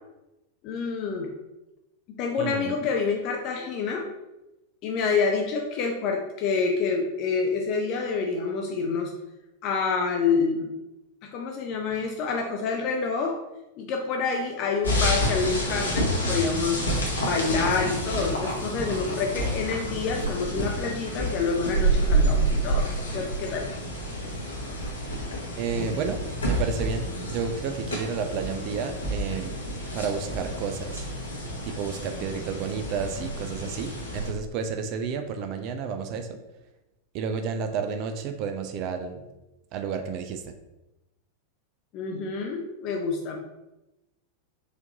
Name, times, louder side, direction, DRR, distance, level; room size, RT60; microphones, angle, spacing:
voice 1, 0.6-1.3 2.1-4.0 4.8-9.1 9.6-10.7 11.3-13.4 13.8-16.8 17.2-23.7 41.9-43.4, left 5 dB, 40° left, 1 dB, 0.4 m, -27 dB
voice 2, 2.4-2.7 25.6-29.6 29.9-31.0 31.6-36.4 37.1-39.2 39.7-40.5, right 6 dB, 40° right, 7 dB, 0.3 m, -31 dB
sound 1, 14.8-34.3, right 1 dB, 70° left, 0.9 m, -29 dB
4.2 x 2.6 x 2.8 m, 0.97 s
figure-of-eight pair, 90°, 0 cm